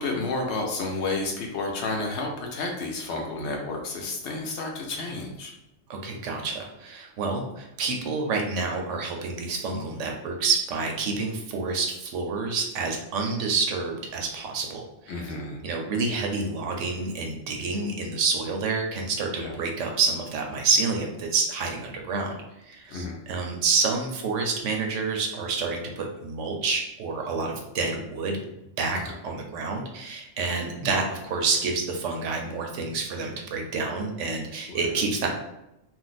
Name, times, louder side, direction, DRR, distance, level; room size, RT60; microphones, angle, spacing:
voice 1, 0.0-5.5 15.1-15.6 19.4-19.6 22.9-23.2 28.9-29.2 34.7-34.9, left 3 dB, 65° left, 1 dB, 0.8 m, -31 dB
voice 2, 5.9-15.2 15.6-22.3 22.7-28.4 28.8-35.3, right 4 dB, 75° right, 2 dB, 0.9 m, -28 dB
2.5 x 2.0 x 3.9 m, 0.87 s
omnidirectional pair, 1.4 m